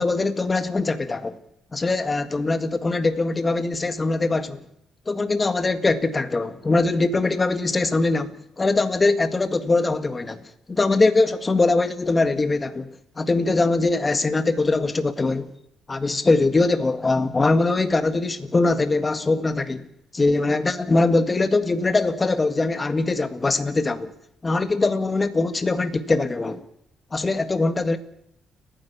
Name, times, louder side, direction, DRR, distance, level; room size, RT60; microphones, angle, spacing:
voice 1, 0.0-1.4 1.7-4.6 5.1-10.4 10.7-15.5 15.9-19.9 20.1-24.1 24.4-26.6 27.1-28.0, left 3 dB, 25° left, 1.7 m, -22 dB
30.0 x 10.5 x 8.5 m
cardioid pair, 90°, 0 cm